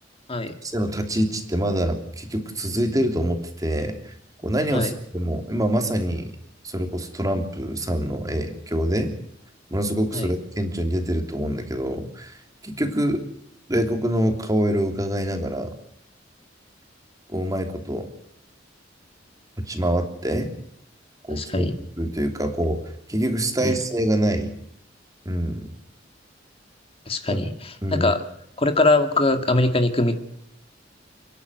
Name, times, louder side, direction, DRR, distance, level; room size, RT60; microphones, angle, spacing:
voice 1, 0.6-4.1 4.4-6.3 6.6-9.1 9.7-13.2 13.7-15.7 17.3-18.1 19.6-20.5 21.3-21.7 22.0-22.8 23.1-24.5 25.2-25.7 27.3-27.4 27.8-28.1, equal, 20° right, 5 dB, 3.1 m, -25 dB
voice 2, 21.3-21.7 23.6-23.7 27.1-28.2 28.6-30.2, left 2 dB, 30° left, 7 dB, 2.0 m, -22 dB
30.0 x 11.0 x 8.0 m, 0.75 s
head